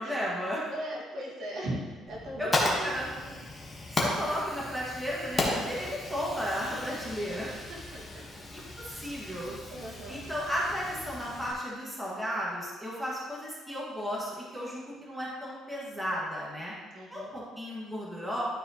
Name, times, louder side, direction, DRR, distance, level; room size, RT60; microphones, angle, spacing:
voice 1, 0.0-0.7 2.4-3.0 3.9-7.5 8.5-9.6 10.1-16.7 17.1-18.4, equal, 5° right, -6 dB, 1.8 m, -34 dB
voice 2, 0.7-3.5 6.9-7.0 7.4-8.3 9.5-10.2 16.9-17.3, right 1 dB, 55° right, -4 dB, 1.9 m, -40 dB
Fire, 2.1-11.5, left 2 dB, 20° left, 1.3 m, -35 dB
12.0 x 4.8 x 3.0 m, 1.3 s
cardioid pair, 140°, 0 cm